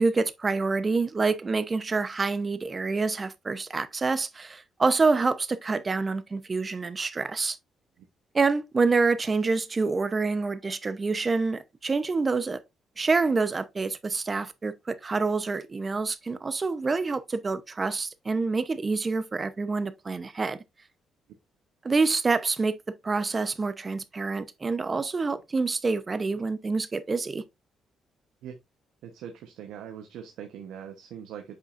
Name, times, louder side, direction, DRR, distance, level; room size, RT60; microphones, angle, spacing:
voice 1, 0.0-7.6 8.3-12.6 13.0-20.6 21.8-22.8 23.0-27.4, right 4 dB, 30° right, 0.8 m, -27 dB
voice 2, 29.0-31.6, right 9 dB, 85° right, 1.0 m, -41 dB
8.2 x 5.2 x 2.5 m
cardioid pair, 90°, 0 cm